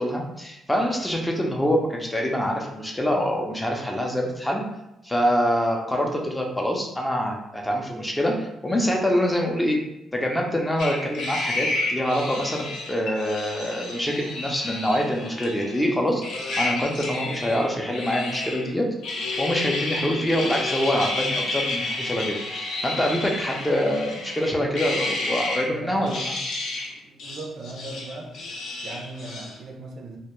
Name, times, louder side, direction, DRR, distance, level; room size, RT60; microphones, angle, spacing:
voice 1, 0.0-4.6 5.0-9.8 10.1-16.2 16.6-18.9 19.4-26.3, equal, 10° left, 0 dB, 0.5 m, -25 dB
sound 1, 10.8-15.9 16.2-18.7 19.0-25.7 26.0-26.9 27.2-29.6, left 2 dB, 75° left, 0.5 m, -31 dB
voice 2, 25.7-26.1 27.0-28.3 28.8-30.2, right 2 dB, 65° right, 2 dB, 0.4 m, -38 dB
2.1 x 2.1 x 3.0 m, 0.88 s
cardioid pair, 90°, 0 cm